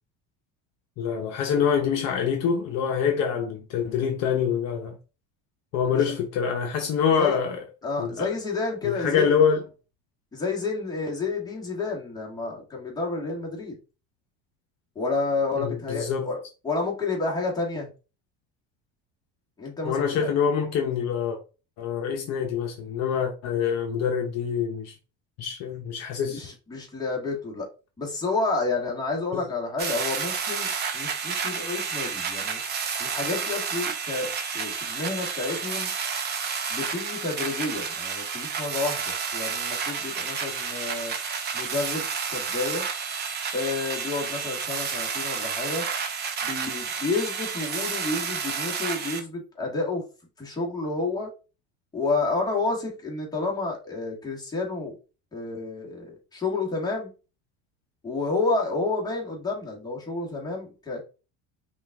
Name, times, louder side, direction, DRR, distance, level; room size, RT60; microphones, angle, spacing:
voice 1, 1.0-5.0 5.7-7.6 8.0-8.3 8.8-9.6 15.6-16.3 19.8-21.4 21.8-24.9 25.4-26.5, left 7 dB, 50° left, 0.9 m, -25 dB
voice 2, 7.8-9.3 10.3-13.8 14.9-17.9 19.6-20.3 26.3-27.7 28.0-32.6 33.0-35.9 36.7-41.1 41.5-42.8 43.5-45.9 46.4-50.0 50.4-51.3 51.9-54.9 55.3-57.1 58.0-61.0, left 3 dB, 10° left, 1.6 m, -30 dB
sound 1, 29.8-49.2, right 6 dB, 30° right, 0.8 m, -30 dB
5.5 x 2.5 x 3.5 m
cardioid pair, 150°, 34 cm